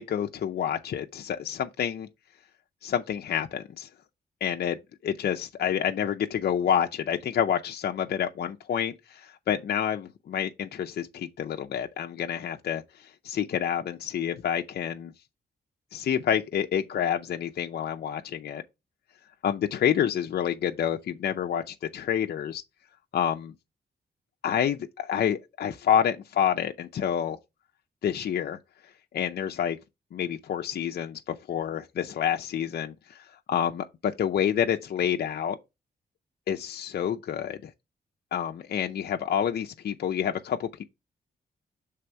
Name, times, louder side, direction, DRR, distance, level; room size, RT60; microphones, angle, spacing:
voice 1, 0.0-2.1 2.8-3.9 4.4-4.8 5.0-15.1 15.9-18.6 19.4-22.6 23.1-23.5 24.4-27.4 28.0-28.6 29.1-29.8 30.1-35.6 36.5-37.7 38.3-40.8, left 9 dB, 65° left, 0.5 m, -28 dB
6.7 x 3.4 x 4.5 m
cardioid pair, 85°, 18 cm